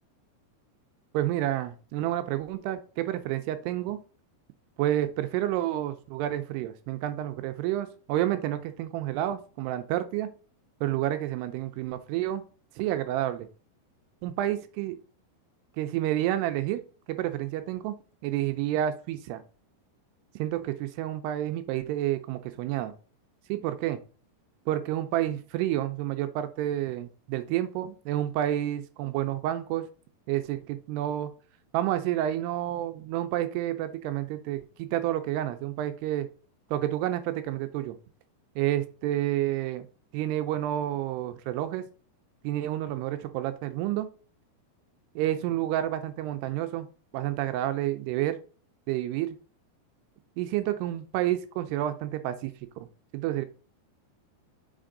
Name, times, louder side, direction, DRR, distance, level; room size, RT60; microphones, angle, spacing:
voice 1, 1.1-4.0 4.8-10.3 10.8-12.4 12.8-13.5 14.2-15.0 15.8-16.8 17.1-18.0 18.2-19.4 20.4-22.9 23.5-24.0 24.7-29.9 30.3-31.3 31.7-36.3 36.7-38.0 38.6-39.9 40.1-41.8 42.4-44.1 45.2-46.9 47.1-48.4 48.9-49.4 50.4-52.9 53.1-53.5, right 13 dB, 85° right, 10 dB, 2.6 m, -29 dB
5.8 x 4.5 x 3.8 m, 0.37 s
omnidirectional pair, 4.9 m